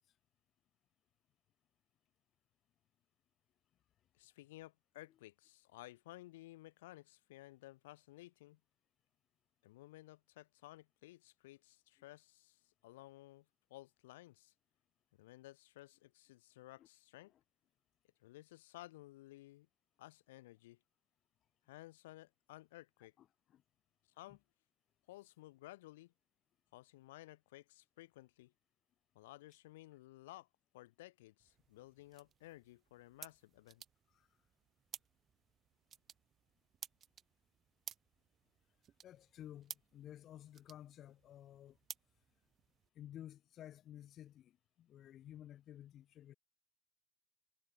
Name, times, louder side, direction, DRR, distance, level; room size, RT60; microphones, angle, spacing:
voice 1, 4.1-8.6 9.6-14.5 15.2-17.3 18.2-19.7 20.0-20.8 21.7-23.1 24.2-24.4 25.1-26.1 26.7-28.5 29.1-30.5 30.7-33.8, left 17 dB, 75° left, 0.5 m, -56 dB
voice 2, 23.2-23.6 24.3-24.4 34.1-34.3 39.0-41.8 42.9-46.3, left 11 dB, 55° left, 1.0 m, -54 dB
sound 1, 31.4-42.9, right 9 dB, 45° right, 2.1 m, -56 dB
hypercardioid pair, 60°, 0 cm